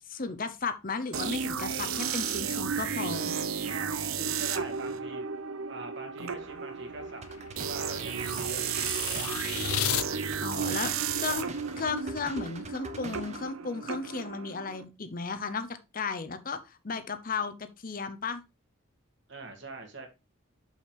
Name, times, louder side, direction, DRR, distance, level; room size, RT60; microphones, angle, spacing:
voice 1, 0.1-3.3 10.4-11.5 11.8-18.4, left 4 dB, 40° left, 10 dB, 0.8 m, -35 dB
sound 1, 1.1-14.8, right 6 dB, 80° right, 0.8 m, -33 dB
voice 2, 3.6-5.3 5.7-9.7 19.3-20.1, right 2 dB, 55° right, 4 dB, 2.1 m, -44 dB
sound 2, 6.4-10.1, left 12 dB, 85° left, 0.4 m, -35 dB
sound 3, 7.2-13.4, right 2 dB, 30° right, 0.8 m, -44 dB
6.5 x 5.7 x 4.4 m, 0.27 s
head